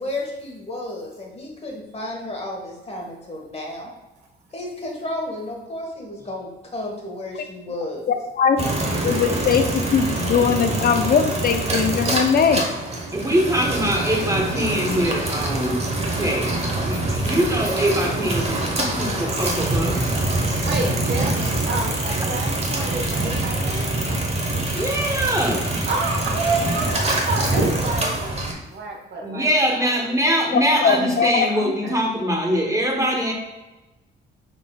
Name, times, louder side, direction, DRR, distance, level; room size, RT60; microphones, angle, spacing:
voice 1, 0.0-3.9 4.5-8.2, left 1 dB, 30° left, 0 dB, 1.4 m, -32 dB
sound 1, 8.6-28.5, right 2 dB, 30° right, 1.1 m, -24 dB
voice 2, 9.0-12.6 30.5-31.5, left 6 dB, 50° left, 7 dB, 0.5 m, -20 dB
voice 3, 13.1-20.0 24.7-25.7 29.2-33.3, equal, 15° right, 0 dB, 1.1 m, -23 dB
voice 4, 20.6-24.5 25.9-30.2 31.5-32.0, right 3 dB, 60° right, 1 dB, 1.2 m, -30 dB
5.9 x 3.7 x 2.3 m, 1.1 s
cardioid pair, 90°, 20 cm